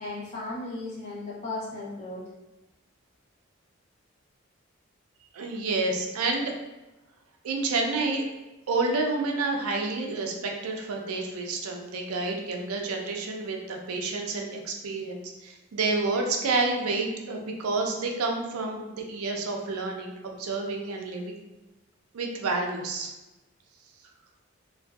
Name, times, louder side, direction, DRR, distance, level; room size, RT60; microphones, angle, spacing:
voice 1, 0.0-2.2, left 2 dB, 35° left, -7 dB, 0.7 m, -35 dB
voice 2, 5.3-6.5 7.4-8.2 8.7-21.3 22.1-23.1, right 3 dB, 90° right, 2 dB, 0.4 m, -29 dB
2.5 x 2.2 x 2.2 m, 1.0 s
head